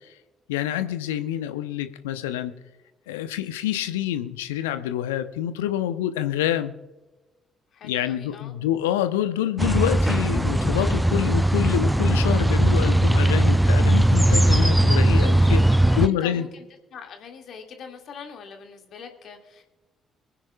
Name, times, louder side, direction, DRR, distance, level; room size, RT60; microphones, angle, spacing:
voice 1, 0.5-2.5 3.1-6.7 7.8-15.6 16.0-16.5, left 11 dB, 75° left, 11 dB, 0.8 m, -27 dB
voice 2, 7.7-8.5 15.5-16.6 16.9-19.6, left 6 dB, 55° left, 3 dB, 2.2 m, -43 dB
sound 1, 9.6-16.1, right 1 dB, 5° right, 0.4 m, -19 dB
24.5 x 10.0 x 2.4 m, 1.1 s
figure-of-eight pair, 40°, 0 cm